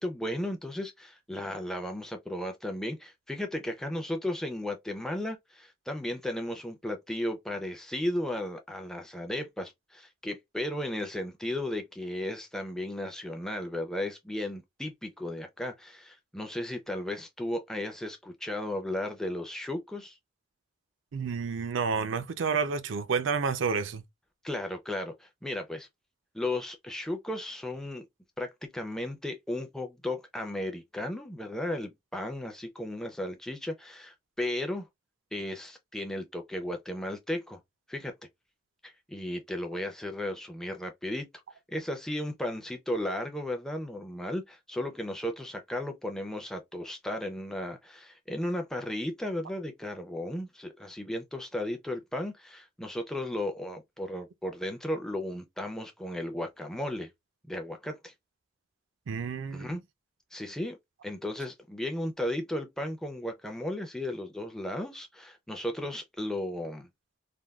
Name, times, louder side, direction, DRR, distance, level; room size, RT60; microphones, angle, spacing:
voice 1, 0.0-20.2 24.4-25.9 26.3-28.1 28.4-34.9 35.3-37.6 37.9-38.1 38.8-41.3 41.7-57.1 57.5-58.1 59.5-59.8 60.3-60.8 61.0-66.9, left 1 dB, 5° left, 0.4 m, -35 dB
voice 2, 21.1-24.0 59.1-59.8, right 5 dB, 80° right, 0.4 m, -30 dB
3.4 x 2.2 x 2.3 m
head